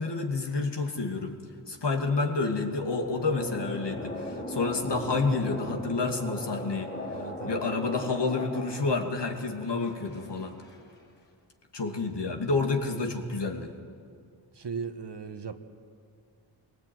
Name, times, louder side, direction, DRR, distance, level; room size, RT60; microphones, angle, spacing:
voice 1, 0.0-1.3 1.7-6.9 7.4-10.5 11.7-13.7, left 3 dB, 55° left, 3 dB, 2.6 m, -29 dB
sound 1, 2.5-10.8, left 1 dB, 20° left, 5.2 m, -38 dB
voice 2, 7.1-7.6 14.5-15.5, right 5 dB, 55° right, 8 dB, 1.6 m, -37 dB
21.0 x 18.5 x 9.4 m, 2.2 s
cardioid pair, 45°, 50 cm